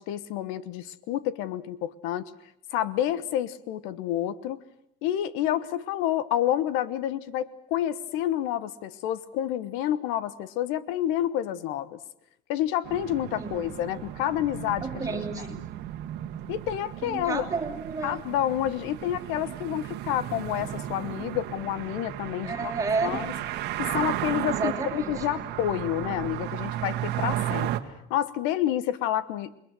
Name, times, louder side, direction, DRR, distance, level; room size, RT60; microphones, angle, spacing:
voice 1, 0.0-2.3 2.7-4.6 5.0-12.0 12.5-15.2 16.5-17.5 18.0-22.7 23.0-23.3 23.8-27.7 28.1-29.6, left 12 dB, 75° left, 16 dB, 1.2 m, -29 dB
sound 1, 12.8-27.8, right 13 dB, 55° right, 1.7 m, -34 dB
voice 2, 13.4-13.7 14.8-15.7 17.0-18.2 22.4-23.3 24.4-25.2, right 4 dB, 15° right, 3 dB, 3.0 m, -31 dB
28.5 x 21.5 x 7.7 m, 0.71 s
cardioid pair, 160°, 21 cm